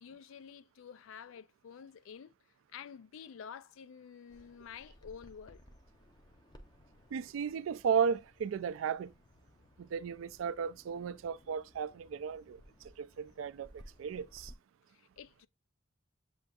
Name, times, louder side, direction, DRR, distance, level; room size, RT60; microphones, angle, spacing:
voice 1, 0.0-2.3 2.7-5.6 14.9-15.5, left 7 dB, 85° left, 0.4 m, -50 dB
Bird vocalization bird call bird song, 4.3-14.5, equal, 20° left, 0.5 m, -59 dB
voice 2, 7.1-9.1 9.8-12.6 13.0-14.5, right 7 dB, 85° right, 0.3 m, -35 dB
7.7 x 2.6 x 2.3 m
head